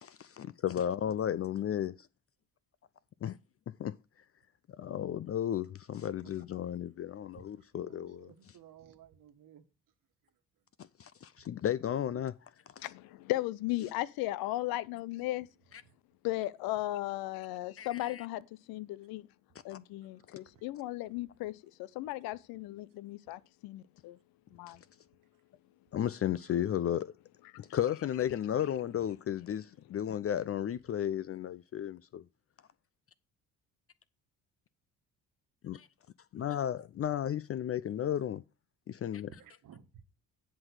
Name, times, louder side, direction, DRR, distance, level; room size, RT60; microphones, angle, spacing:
voice 1, 0.0-1.9 3.2-3.3 3.8-3.9 4.8-8.6 11.0-12.3 17.8-18.3 19.7-19.8 25.9-27.1 27.6-32.2 35.6-35.9 36.3-38.4 38.9-39.3, left 10 dB, 40° left, 0.5 m, -34 dB
voice 2, 7.8-9.6 12.1-12.2 39.3-40.0, right 8 dB, 60° right, 1.4 m, -56 dB
voice 3, 12.8-15.5 16.2-19.3 19.6-24.2 24.5-24.8 27.5-27.6, left 16 dB, 75° left, 0.6 m, -36 dB
10.5 x 4.0 x 6.3 m
supercardioid pair, 60°, 36 cm